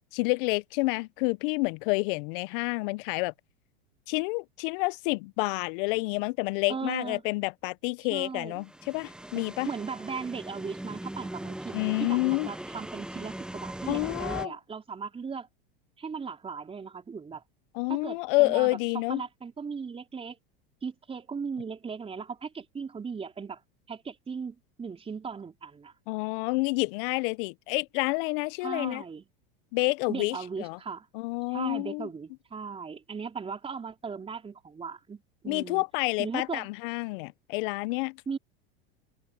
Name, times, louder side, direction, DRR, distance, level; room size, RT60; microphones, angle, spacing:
voice 1, 0.0-3.3 4.1-9.7 11.7-12.5 13.9-14.5 17.7-19.2 26.1-29.0 29.7-30.8 31.1-32.1 35.5-38.2, left 26 dB, 60° left, 0.7 m, -29 dB
voice 2, 6.7-7.2 8.1-8.6 9.4-15.5 16.0-17.4 17.9-18.7 19.1-20.4 20.8-23.6 23.9-25.9 28.6-29.2 30.1-31.1 31.5-35.8 36.2-36.7 38.3-38.4, right 5 dB, 20° right, 4.0 m, -37 dB
sound 1, 8.6-14.5, right 1 dB, 5° right, 1.0 m, -40 dB
hypercardioid pair, 105°, 30 cm